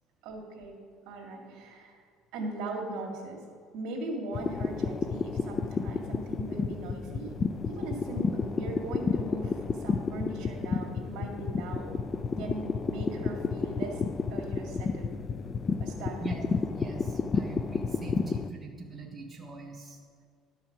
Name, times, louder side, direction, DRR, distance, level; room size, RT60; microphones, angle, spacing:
voice 1, 0.2-0.8 1.1-2.0 2.3-3.4 3.7-7.4 7.6-11.9 12.4-14.0 14.3-15.1 15.8-16.3, right 2 dB, 70° right, 0 dB, 2.2 m, -39 dB
sound 1, 4.3-18.5, left 5 dB, 30° left, 0.4 m, -31 dB
voice 2, 16.7-20.0, right 3 dB, 20° right, -1 dB, 1.2 m, -42 dB
12.0 x 5.6 x 5.9 m, 2.1 s
cardioid pair, 130°, 0 cm